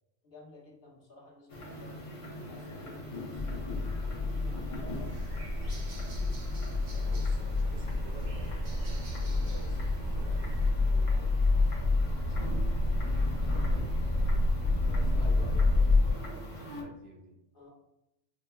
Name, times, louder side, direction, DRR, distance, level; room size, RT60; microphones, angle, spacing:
voice 1, 0.2-2.0 2.4-3.5 4.4-5.1 10.8-13.2 13.5-15.3 17.5-17.7, left 3 dB, 55° left, -4 dB, 1.2 m, -54 dB
sound 1, 1.5-16.8, equal, 35° left, 0.6 m, -43 dB
sound 2, 3.4-16.1, left 2 dB, 85° left, 1.4 m, -28 dB
sound 3, 4.9-10.7, right 3 dB, 90° right, 1.1 m, -49 dB
voice 2, 6.9-10.6 10.9-11.2 15.2-17.4, right 2 dB, 70° right, -1 dB, 0.8 m, -50 dB
5.1 x 2.1 x 2.2 m, 0.88 s
omnidirectional pair, 1.1 m